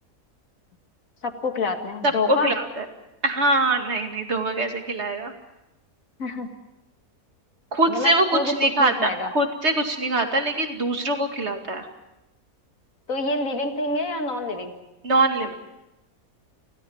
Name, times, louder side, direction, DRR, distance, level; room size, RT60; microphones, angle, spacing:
voice 1, 1.2-2.5 6.2-6.5 7.9-9.3 13.1-14.7, left 3 dB, 55° left, 5 dB, 2.5 m, -27 dB
voice 2, 2.0-2.8 3.2-5.3 7.7-11.9 15.0-15.5, right 2 dB, 45° right, 4 dB, 2.6 m, -23 dB
28.0 x 17.0 x 7.2 m, 0.93 s
omnidirectional pair, 1.7 m